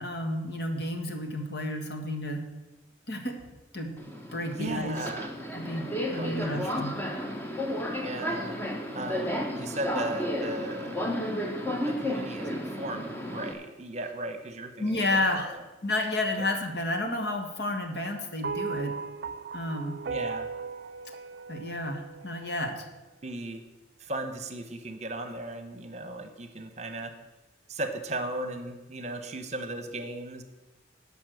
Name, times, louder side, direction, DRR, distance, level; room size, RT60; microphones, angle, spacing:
voice 1, 0.0-2.4 3.1-3.4 3.7-4.0 4.3-4.9 5.5-6.9 14.8-15.5 15.8-18.9 19.5-20.0 21.5-22.9, left 1 dB, 60° left, 4 dB, 1.5 m, -31 dB
Subway metro underground, 4.0-13.5, equal, 10° left, 1.1 m, -33 dB
voice 2, 4.5-5.3 6.1-7.2 8.0-8.6 8.9-11.2 11.7-15.6 16.4-16.5 20.1-20.5 23.2-23.6 24.0-27.1 27.7-30.4, right 2 dB, 35° right, 8 dB, 1.0 m, -37 dB
sound 1, 18.4-22.9, right 5 dB, 55° right, 0.4 m, -37 dB
11.5 x 5.5 x 7.7 m, 1.1 s
head